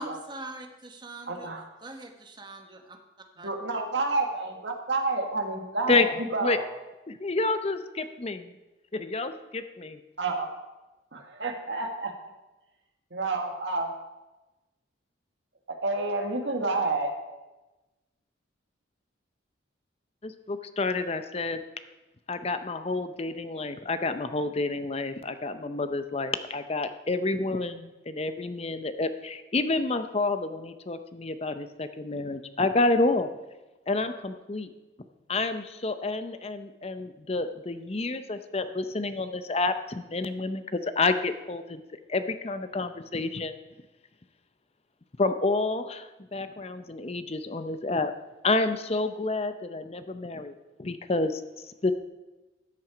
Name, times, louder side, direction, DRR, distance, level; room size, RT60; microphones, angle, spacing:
voice 1, 0.0-1.5 1.8-3.0 3.4-3.5, right 1 dB, 25° right, 4 dB, 1.1 m, -42 dB
voice 2, 1.3-1.6 3.4-6.6 10.2-10.5 11.1-12.1 13.1-13.9 15.7-17.1, right 3 dB, 65° right, 3 dB, 1.7 m, -29 dB
voice 3, 7.1-8.5 8.9-10.0 20.2-21.6 22.3-33.3 33.9-34.7 35.3-41.8 42.1-43.5 45.2-48.1 48.4-50.5 50.8-51.9, left 3 dB, 30° left, 10 dB, 0.6 m, -29 dB
13.5 x 7.5 x 5.1 m, 1.1 s
head